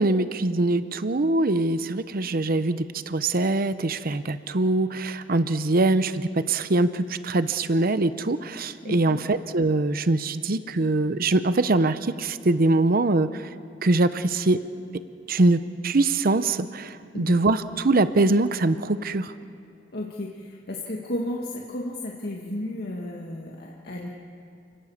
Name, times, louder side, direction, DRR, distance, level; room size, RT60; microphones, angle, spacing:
voice 1, 0.0-13.3 13.8-14.6 15.3-19.3, right 2 dB, 55° right, 12 dB, 0.8 m, -23 dB
voice 2, 8.8-9.2 17.1-17.4 19.9-24.1, left 1 dB, 60° left, -2 dB, 1.9 m, -33 dB
29.5 x 17.5 x 7.3 m, 2.8 s
head